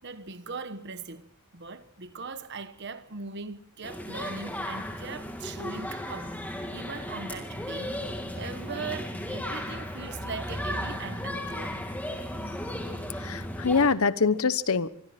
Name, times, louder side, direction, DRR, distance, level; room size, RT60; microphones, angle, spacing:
voice 1, 0.0-6.3 6.7-7.9 8.3-11.8, right 4 dB, 50° right, 1.2 m, -40 dB
sound 1, 3.8-13.9, left 1 dB, 10° left, 3.0 m, -35 dB
voice 2, 13.2-14.9, left 5 dB, 75° left, 1.0 m, -24 dB
24.5 x 24.5 x 4.4 m
head